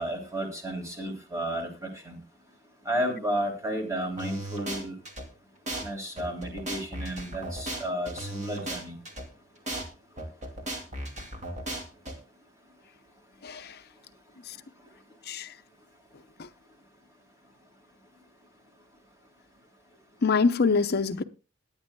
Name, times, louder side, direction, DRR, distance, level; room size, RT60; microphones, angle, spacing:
voice 1, 0.0-2.2 2.8-5.0 5.8-9.0, right 1 dB, 15° right, 3.2 m, -32 dB
sound 1, 4.2-5.2 5.7-5.8 6.2-9.2 9.7-9.8 10.2-12.1, right 1 dB, 35° right, 2.5 m, -36 dB
voice 2, 13.4-13.8 14.5-14.6 15.3-15.5 16.4-16.5 20.2-21.2, left 4 dB, 55° left, 0.7 m, -25 dB
21.0 x 8.9 x 2.3 m
head